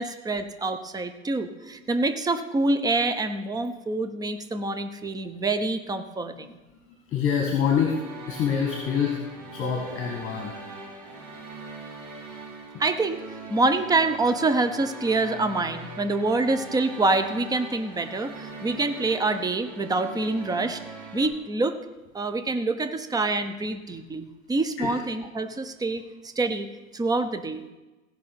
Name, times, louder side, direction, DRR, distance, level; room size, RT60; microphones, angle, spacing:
voice 1, 0.0-6.6 12.8-13.2 13.5-20.8 21.1-21.8 22.1-27.6, right 2 dB, 10° right, 8 dB, 0.8 m, -26 dB
voice 2, 6.3-9.2 9.5-10.6 24.8-25.0, left 7 dB, 30° left, 2 dB, 1.8 m, -27 dB
sound 1, 7.6-21.3, right 3 dB, 50° right, 4.0 m, -41 dB
16.5 x 5.5 x 6.0 m, 1.1 s
hypercardioid pair, 90°, 42 cm